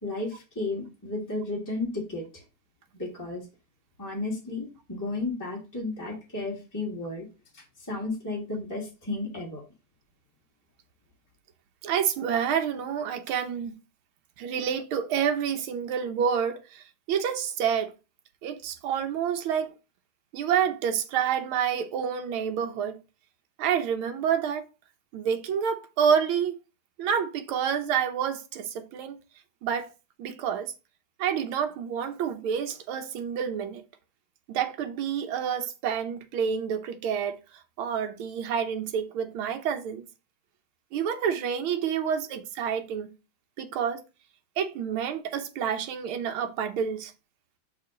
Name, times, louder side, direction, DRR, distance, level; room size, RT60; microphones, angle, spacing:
voice 1, 0.0-2.4 3.0-3.5 4.0-7.3 7.5-9.6, left 2 dB, 10° left, 1.7 m, -33 dB
voice 2, 11.8-13.8 14.4-17.9 18.4-19.7 20.3-23.0 23.6-24.7 25.1-26.6 27.0-29.2 29.6-29.9 30.2-30.7 31.2-33.8 34.5-37.4 37.8-40.0 40.9-43.1 43.6-44.0 44.6-47.1, right 8 dB, 85° right, 1.7 m, -28 dB
5.6 x 3.8 x 5.0 m
omnidirectional pair, 2.2 m